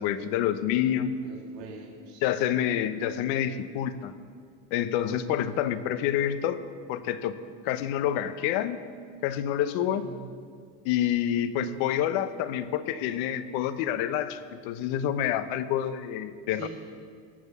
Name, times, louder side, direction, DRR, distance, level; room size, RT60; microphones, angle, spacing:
voice 1, 0.0-1.2 2.2-4.1 4.7-6.6 6.9-7.4 7.6-8.8 9.2-10.1 10.8-16.7, left 10 dB, 70° left, 11 dB, 1.0 m, -28 dB
voice 2, 1.2-2.2 9.9-10.2 16.5-16.7, right 5 dB, 85° right, 0 dB, 2.1 m, -43 dB
18.0 x 6.4 x 8.3 m, 2.1 s
supercardioid pair, 80°, 49 cm